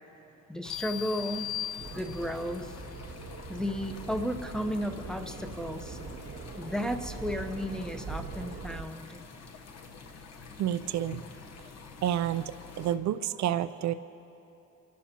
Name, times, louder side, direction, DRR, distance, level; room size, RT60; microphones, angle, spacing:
voice 1, 0.5-1.6 1.9-2.7 3.5-6.0 6.5-9.2, equal, ahead, 5 dB, 0.8 m, -34 dB
sound 1, 0.6-13.0, left 4 dB, 60° left, 1.0 m, -48 dB
sound 2, 0.7-2.5, left 12 dB, 80° left, 0.5 m, -38 dB
sound 3, 1.8-8.8, right 4 dB, 45° right, 1.1 m, -42 dB
voice 2, 10.6-11.2 12.0-13.9, right 11 dB, 65° right, 13 dB, 0.5 m, -29 dB
28.5 x 12.0 x 2.9 m, 2.9 s
cardioid pair, 90°, 30 cm